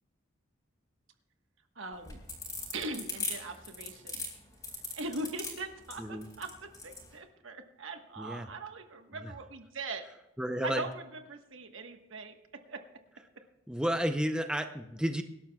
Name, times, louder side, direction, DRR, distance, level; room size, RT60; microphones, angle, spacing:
voice 1, 1.8-2.2 2.7-4.2 4.9-10.0 10.6-12.8, right 2 dB, 65° right, 6 dB, 1.3 m, -41 dB
sound 1, 1.9-7.1, left 3 dB, 15° left, 4.6 m, -39 dB
voice 2, 8.2-8.5 9.2-9.3 10.4-10.8 13.7-15.2, equal, 5° right, 6 dB, 0.6 m, -32 dB
25.0 x 12.0 x 2.3 m, 0.99 s
head